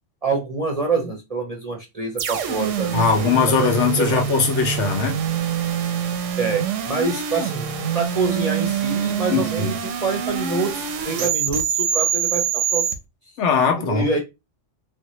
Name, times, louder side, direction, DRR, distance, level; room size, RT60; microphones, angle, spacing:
voice 1, 0.2-4.2 6.4-12.9 13.8-14.2, right 3 dB, 45° right, 0.5 m, -26 dB
sound 1, 2.2-12.9, right 8 dB, 90° right, 0.9 m, -25 dB
voice 2, 2.9-5.2 9.3-9.7 13.4-14.1, left 5 dB, 75° left, 1.0 m, -20 dB
4.1 x 2.0 x 2.9 m
omnidirectional pair, 1.2 m